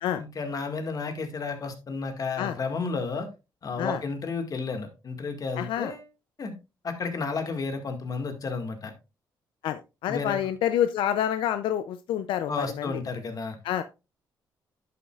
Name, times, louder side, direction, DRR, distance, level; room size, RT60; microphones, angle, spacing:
voice 1, 0.2-3.3 3.6-6.1 6.4-6.5 6.8-8.9 10.1-10.4 12.5-13.6, left 4 dB, 45° left, 6 dB, 1.9 m, -32 dB
voice 2, 5.6-5.9 9.6-12.9 13.6-13.8, left 10 dB, 85° left, 11 dB, 0.5 m, -28 dB
10.5 x 7.6 x 2.4 m, 0.28 s
cardioid pair, 90°, 8 cm